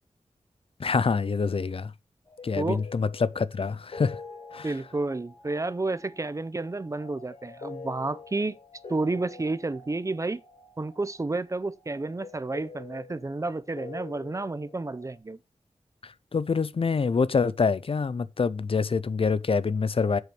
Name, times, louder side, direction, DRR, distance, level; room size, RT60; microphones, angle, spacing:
voice 1, 0.8-1.9 2.4-4.2 4.5-4.7 16.0-20.2, left 5 dB, 55° left, 0.5 m, -26 dB
sound 1, 2.2-15.2, left 4 dB, 75° left, 4.9 m, -46 dB
voice 2, 4.6-8.6 8.9-10.4 10.8-15.4, right 2 dB, 30° right, 0.5 m, -31 dB
7.9 x 5.0 x 6.0 m
wide cardioid pair, 95°, 11 cm